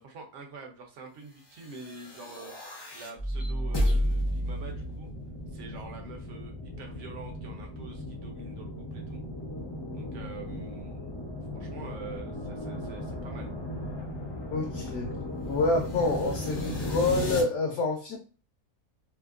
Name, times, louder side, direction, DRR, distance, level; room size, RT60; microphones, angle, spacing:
voice 1, 0.0-5.1 5.5-9.2 9.9-11.1 11.5-13.5, right 4 dB, 60° right, 2 dB, 1.0 m, -46 dB
sound 1, 1.6-17.4, equal, 35° left, 0.4 m, -34 dB
voice 2, 14.5-15.1 15.5-18.2, left 3 dB, 65° left, 1 dB, 0.8 m, -27 dB
2.8 x 2.4 x 2.4 m, 0.36 s
omnidirectional pair, 1.5 m